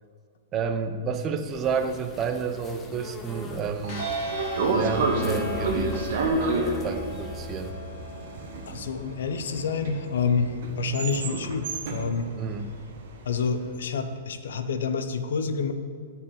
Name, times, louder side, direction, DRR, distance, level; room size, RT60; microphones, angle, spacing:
voice 1, 0.5-4.0 4.7-6.5 6.8-7.8 12.4-12.7, right 6 dB, 30° right, 8 dB, 0.7 m, -30 dB
sound 1, 1.5-7.7, left 3 dB, 20° left, 0.9 m, -42 dB
Train / Sliding door, 3.4-13.6, right 3 dB, 65° right, 1.3 m, -30 dB
sound 2, 3.9-9.9, left 2 dB, 45° left, 2.3 m, -38 dB
voice 2, 8.7-12.3 13.2-15.7, left 5 dB, 80° left, 9 dB, 0.7 m, -28 dB
8.6 x 4.7 x 6.8 m, 2.2 s
hypercardioid pair, 130°, 0 cm